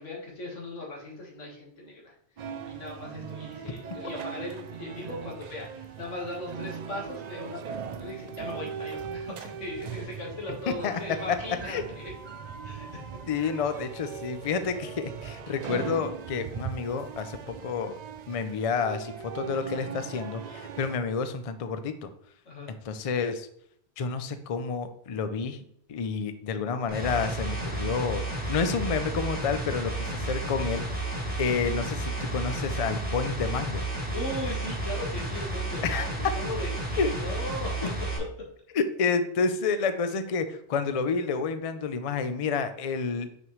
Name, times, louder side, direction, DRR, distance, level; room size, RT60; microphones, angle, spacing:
voice 1, 0.0-2.1 2.7-12.1 12.6-13.0 13.4-13.5 22.5-22.7 34.1-37.9, left 1 dB, 80° left, -2 dB, 1.8 m, -38 dB
sound 1, 2.4-21.0, right 7 dB, 70° right, 0.4 m, -39 dB
voice 2, 10.7-11.0 11.3-11.4 11.7-11.8 13.3-18.0 18.3-22.1 22.8-23.5 24.0-25.6 25.9-28.2 28.5-30.8 31.4-33.9 35.8-36.1 37.0-37.1 38.7-43.3, left 5 dB, 55° left, 10 dB, 0.4 m, -29 dB
sound 2, 26.9-38.2, right 2 dB, 10° right, 1.1 m, -32 dB
5.9 x 5.2 x 3.1 m, 0.68 s
omnidirectional pair, 1.2 m